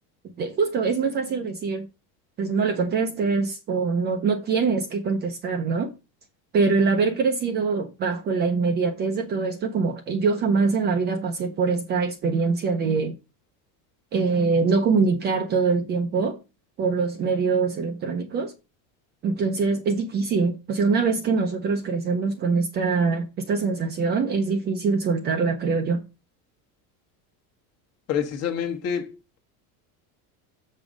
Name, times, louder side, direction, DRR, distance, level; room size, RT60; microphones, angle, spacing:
voice 1, 0.4-1.9 2.4-5.9 6.5-13.1 14.1-16.4 16.8-18.5 19.2-26.0, right 4 dB, 25° right, 0.6 m, -23 dB
voice 2, 28.1-29.4, left 8 dB, 35° left, 1.3 m, -28 dB
7.3 x 5.3 x 5.1 m
cardioid pair, 180°, 44 cm